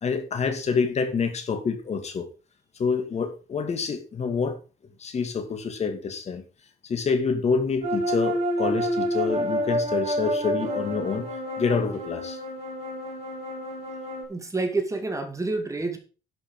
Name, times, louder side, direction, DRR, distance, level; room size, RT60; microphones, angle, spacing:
voice 1, 0.0-2.2 2.8-4.6 5.0-6.4 6.9-11.3 11.6-12.4, left 5 dB, 40° left, 7 dB, 2.2 m, -27 dB
sound 1, 7.8-14.2, equal, 40° right, 5.2 m, -28 dB
voice 2, 14.3-16.0, right 3 dB, 20° right, 6 dB, 2.2 m, -28 dB
11.0 x 5.9 x 5.4 m, 0.34 s
cardioid pair, 110°, 17 cm